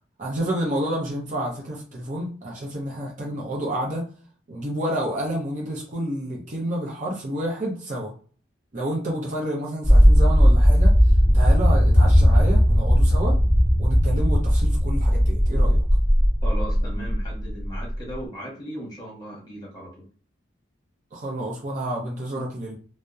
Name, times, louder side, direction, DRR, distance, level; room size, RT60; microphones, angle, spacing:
voice 1, 0.2-4.0 4.5-8.1 8.7-11.0 11.3-13.4 13.8-15.8 21.1-22.8, right 1 dB, 45° right, -3 dB, 0.6 m, -29 dB
sound 1, 9.8-17.9, equal, 5° left, 0.5 m, -17 dB
voice 2, 16.4-20.0, right 1 dB, 20° left, -4 dB, 1.1 m, -37 dB
2.7 x 2.0 x 2.3 m, 0.41 s
head